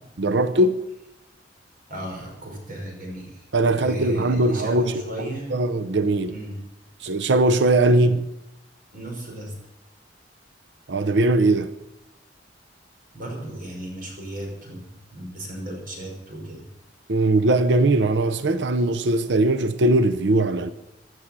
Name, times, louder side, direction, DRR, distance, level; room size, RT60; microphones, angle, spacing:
voice 1, 0.2-0.8 3.5-4.9 5.5-6.3 7.0-8.2 10.9-11.7 17.1-20.7, right 2 dB, 70° right, 0.7 m, -20 dB
voice 2, 1.9-5.6 6.3-6.6 7.9-8.1 8.9-9.5 13.1-16.6, right 1 dB, 50° right, 5.6 m, -35 dB
16.5 x 11.0 x 7.4 m
head